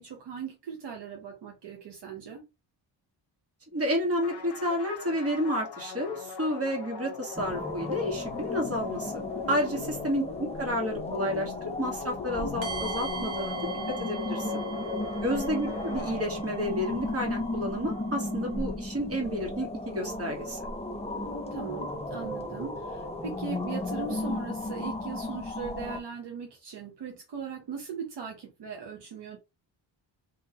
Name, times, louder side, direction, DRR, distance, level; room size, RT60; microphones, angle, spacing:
voice 1, 0.0-2.5 9.8-9.9 15.3-15.4 21.1-29.4, right 6 dB, 65° right, 0.8 m, -39 dB
voice 2, 3.7-13.6 13.9-14.5 15.2-20.7, equal, 30° right, 1.4 m, -31 dB
sound 1, 4.2-16.8, left 7 dB, 65° left, 0.7 m, -40 dB
sound 2, 7.4-26.0, left 2 dB, 15° left, 0.5 m, -35 dB
sound 3, 12.6-18.6, right 7 dB, 85° right, 1.5 m, -41 dB
3.8 x 2.6 x 2.8 m
wide cardioid pair, 150°, 44 cm